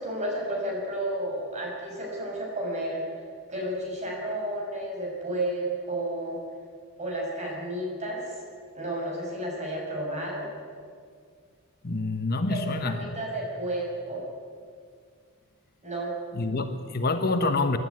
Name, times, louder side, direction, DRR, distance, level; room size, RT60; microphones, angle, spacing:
voice 1, 0.0-3.0 3.5-6.4 7.0-8.3 8.7-10.5 12.5-14.2 15.8-16.1, right 1 dB, 30° right, -1 dB, 6.3 m, -32 dB
voice 2, 11.8-13.1 16.3-17.8, left 3 dB, 45° left, 7 dB, 1.1 m, -27 dB
24.0 x 12.0 x 9.6 m, 2.1 s
head